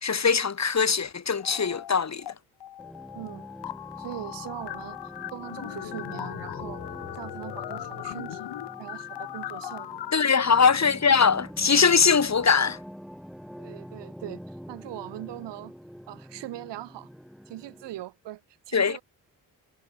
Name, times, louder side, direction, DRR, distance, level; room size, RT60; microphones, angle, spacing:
voice 1, 0.0-2.3 10.1-12.8 18.7-19.0, left 6 dB, 40° left, 2.4 m, -21 dB
sound 1, 1.4-2.3 2.6-10.6, left 12 dB, 75° left, 6.3 m, -38 dB
sound 2, 2.8-18.0, equal, ahead, 7.8 m, -45 dB
voice 2, 3.1-3.5 4.0-5.0 5.3-6.8 7.1-8.5 8.8-10.0 13.6-15.7 16.1-17.1 17.5-18.4 18.7-19.0, right 15 dB, 80° right, 4.7 m, -40 dB
hypercardioid pair, 45°, 42 cm